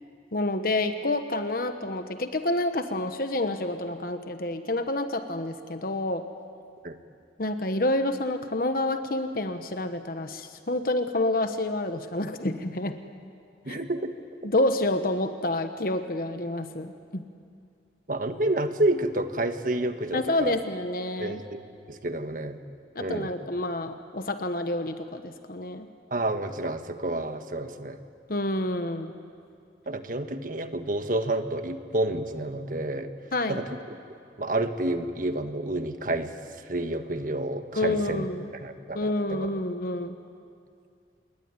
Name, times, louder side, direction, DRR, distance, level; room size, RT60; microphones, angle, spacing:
voice 1, 0.3-6.2 7.4-13.0 13.7-13.8 14.4-17.3 20.1-21.4 22.9-25.9 28.3-29.2 33.3-33.6 37.8-38.5 38.9-40.1, left 2 dB, 55° left, 8 dB, 1.2 m, -28 dB
voice 2, 13.6-14.1 14.4-14.5 18.1-20.5 21.2-21.6 21.9-22.6 23.0-23.3 26.1-28.0 29.9-33.1 33.5-34.0 34.4-36.3 36.7-38.3 38.6-39.5, right 1 dB, 50° right, 8 dB, 1.5 m, -29 dB
27.5 x 21.5 x 9.8 m, 2.4 s
head